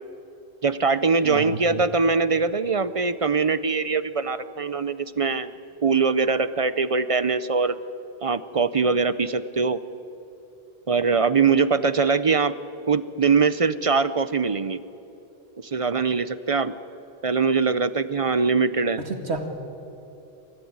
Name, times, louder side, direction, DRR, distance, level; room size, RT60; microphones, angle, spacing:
voice 1, 0.6-5.5 5.8-7.8 8.2-9.8 10.9-12.5 12.9-14.8 15.6-16.7 17.2-19.0, right 4 dB, 40° right, 14 dB, 0.7 m, -22 dB
voice 2, 1.2-1.8 19.0-19.5, right 3 dB, 85° right, 5 dB, 2.4 m, -30 dB
28.0 x 14.5 x 8.8 m, 3.0 s
omnidirectional pair, 1.1 m